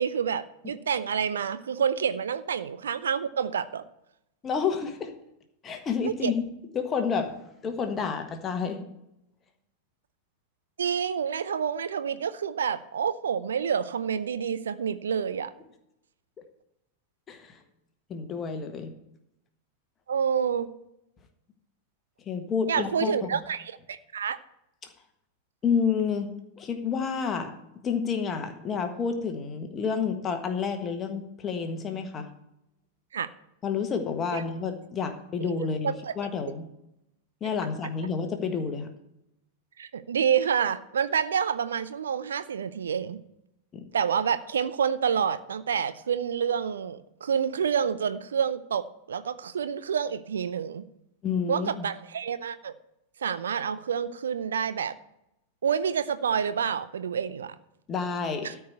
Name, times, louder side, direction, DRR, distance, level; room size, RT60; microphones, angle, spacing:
voice 1, 0.0-3.8 6.0-6.3 10.8-15.5 20.1-20.7 22.7-24.4 33.1-33.3 34.3-34.4 35.8-36.1 39.8-43.2 43.9-50.8 51.5-52.7 53.2-54.9 55.6-57.5 58.4-58.5, right 7 dB, 65° right, 13 dB, 0.6 m, -28 dB
voice 2, 4.4-5.1 5.6-6.5 6.7-7.4 7.6-8.8 17.3-17.6 18.1-18.9 22.3-23.3 25.6-26.3 26.6-27.5 27.8-32.3 33.6-36.7 37.4-38.9 43.7-43.8 51.2-51.9 57.9-58.6, left 6 dB, 25° left, 6 dB, 1.4 m, -29 dB
13.0 x 4.8 x 8.3 m, 0.83 s
figure-of-eight pair, 90°, 0 cm